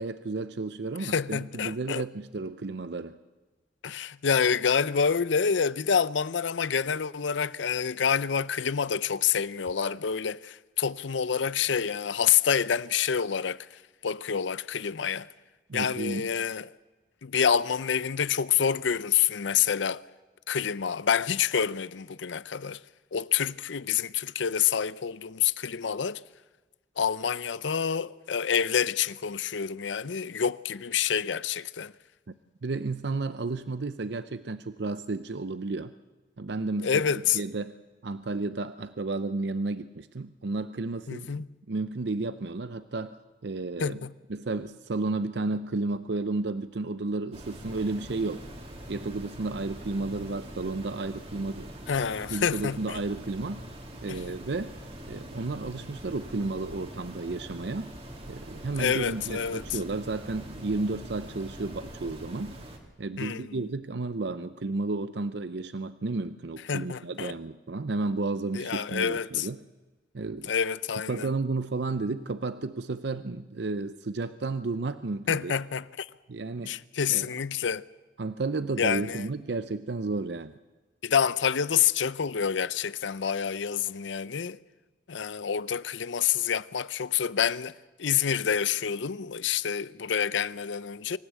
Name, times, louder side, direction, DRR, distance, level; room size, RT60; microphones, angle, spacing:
voice 1, 0.0-3.2 15.7-16.3 32.6-35.9 36.4-37.0 37.3-37.8 38.0-43.2 43.4-48.4 48.9-51.7 52.3-53.6 54.0-54.8 55.1-57.9 58.3-62.5 63.0-69.6 70.1-70.5 71.1-75.5 76.3-76.8 77.1-77.2 78.2-80.5, right 3 dB, 70° right, 0.6 m, -32 dB
voice 2, 1.0-2.1 3.8-15.3 15.7-16.7 17.2-20.0 20.5-22.8 23.1-26.2 27.0-31.9 36.8-37.4 41.1-41.5 43.8-44.1 51.9-53.0 54.1-54.2 58.8-59.8 63.2-63.7 66.7-67.3 68.5-69.5 70.4-71.3 75.3-76.1 76.7-77.8 78.8-79.3 81.0-84.6 85.1-91.2, left 7 dB, 85° left, 0.6 m, -27 dB
sound 1, 47.3-62.8, right 1 dB, 30° right, 2.7 m, -43 dB
25.0 x 16.5 x 8.3 m
head